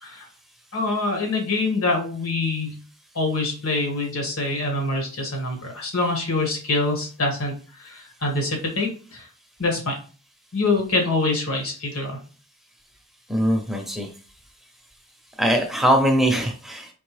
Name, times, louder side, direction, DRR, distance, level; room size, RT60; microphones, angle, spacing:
voice 1, 0.7-2.8 3.1-9.3 9.6-9.9 10.5-12.2, left 2 dB, 80° left, 1 dB, 1.7 m, -25 dB
voice 2, 13.3-14.1 15.4-16.9, equal, ahead, 2 dB, 0.6 m, -21 dB
4.5 x 3.3 x 3.3 m, 0.38 s
head